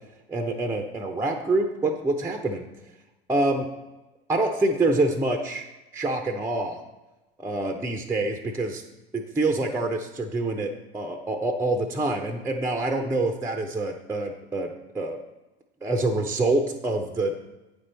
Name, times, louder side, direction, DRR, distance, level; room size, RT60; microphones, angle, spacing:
voice 1, 0.3-2.7 3.3-3.7 4.3-5.6 5.9-6.8 7.4-8.8 9.1-15.2 15.8-17.3, right 2 dB, 10° right, 4 dB, 0.6 m, -26 dB
8.5 x 5.3 x 4.2 m, 1.0 s
hypercardioid pair, 85°, 31 cm